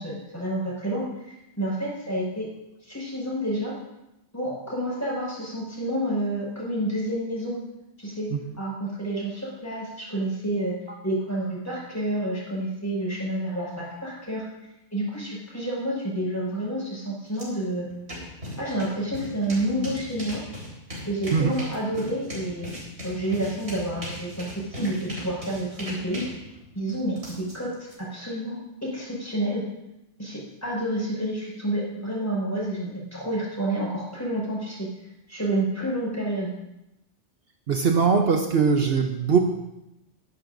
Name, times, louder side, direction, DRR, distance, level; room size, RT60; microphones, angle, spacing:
voice 1, 0.0-2.5 2.8-3.7 4.3-7.6 8.0-8.3 8.6-10.7 11.0-14.5 14.9-17.9 18.6-20.4 21.1-26.3 26.7-27.7 28.0-29.6 30.2-34.9 35.3-36.5, right 1 dB, 15° left, -5 dB, 5.6 m, -29 dB
sound 1, 17.3-17.4 17.8-27.9, equal, 80° right, 4.4 m, -38 dB
voice 2, 37.7-39.4, right 5 dB, 60° right, 4 dB, 1.0 m, -21 dB
22.0 x 11.0 x 2.7 m, 0.89 s
omnidirectional pair, 1.2 m